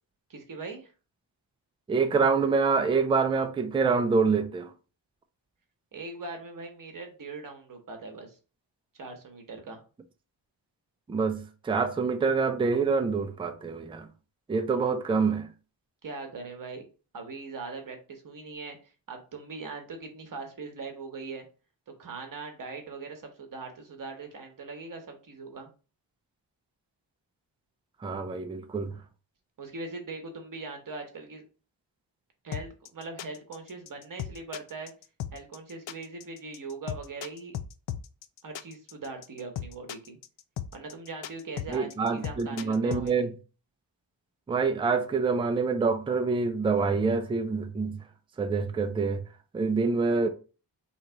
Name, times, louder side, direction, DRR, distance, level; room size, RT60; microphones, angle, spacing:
voice 1, 0.3-0.9 5.9-8.4 9.0-9.8 16.0-16.9 17.1-21.5 22.0-25.7 29.6-31.4 32.4-34.9 35.3-37.6 38.4-40.2 40.7-43.3, right 3 dB, 45° right, 1.0 m, -41 dB
voice 2, 1.9-4.7 11.1-14.1 14.5-15.5 28.0-29.0 41.7-43.3 44.5-48.0 48.4-49.2 49.5-50.3, right 4 dB, 15° right, 0.3 m, -26 dB
sound 1, 32.5-43.1, left 10 dB, 75° left, 0.5 m, -37 dB
3.9 x 3.0 x 4.5 m
wide cardioid pair, 165°, 46 cm